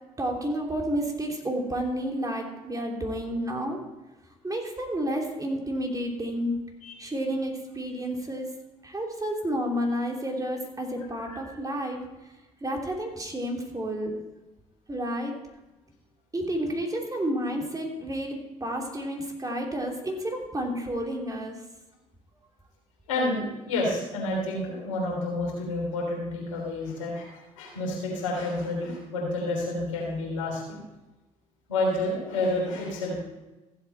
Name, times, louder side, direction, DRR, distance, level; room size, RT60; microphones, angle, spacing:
voice 1, 0.2-3.8 4.4-6.5 7.0-8.5 8.8-12.0 12.6-14.1 14.9-15.3 16.3-21.6, equal, 20° right, 1 dB, 3.1 m, -30 dB
voice 2, 23.1-30.8 31.7-33.1, left 2 dB, 90° left, -2 dB, 3.3 m, -29 dB
15.5 x 8.0 x 4.5 m, 1.1 s
hypercardioid pair, 50°, 16 cm